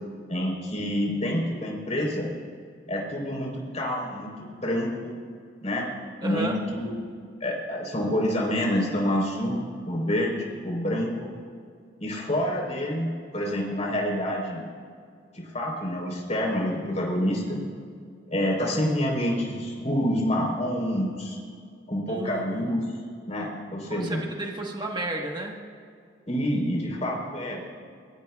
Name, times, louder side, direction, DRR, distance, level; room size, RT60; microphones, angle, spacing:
voice 1, 0.3-2.3 2.9-5.1 5.6-5.9 6.2-6.9 7.4-9.6 9.9-11.1 12.0-14.6 15.3-17.6 18.3-21.4 21.9-22.9 23.3-24.2 26.3-27.7, equal, 35° left, -2 dB, 4.0 m, -27 dB
voice 2, 6.2-6.6 22.1-22.7 23.9-25.6, right 1 dB, 25° right, 0 dB, 1.4 m, -33 dB
23.0 x 21.0 x 2.4 m, 2.2 s
head